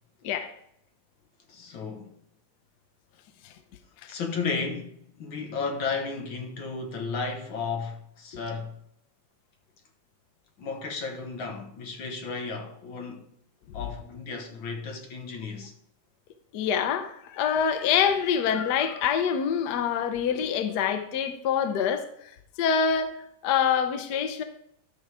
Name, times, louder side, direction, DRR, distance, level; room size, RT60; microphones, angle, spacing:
voice 1, 1.5-2.2 4.1-8.8 10.6-13.2 13.7-15.7, left 4 dB, 85° left, 1.9 m, -34 dB
voice 2, 16.5-23.2 23.4-24.4, left 7 dB, 65° left, 1.2 m, -26 dB
12.5 x 6.2 x 3.5 m
omnidirectional pair, 2.1 m